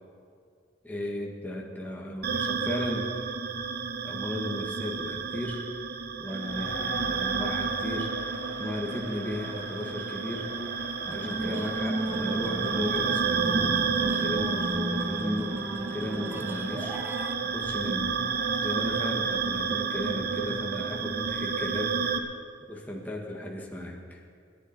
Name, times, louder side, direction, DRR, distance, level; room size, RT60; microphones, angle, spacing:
voice 1, 0.8-3.1 4.0-5.7 6.2-8.1 8.6-10.5 11.0-13.8 14.2-15.6 15.9-17.0 17.4-18.2 18.6-22.4 22.7-24.2, left 1 dB, 10° left, -2 dB, 1.9 m, -35 dB
sound 1, 2.2-22.2, right 5 dB, 55° right, 1.0 m, -31 dB
sound 2, 6.4-20.8, left 3 dB, 80° left, 1.5 m, -46 dB
sound 3, 11.1-17.3, right 1 dB, 10° right, 0.5 m, -34 dB
27.5 x 11.0 x 4.4 m, 2.3 s
head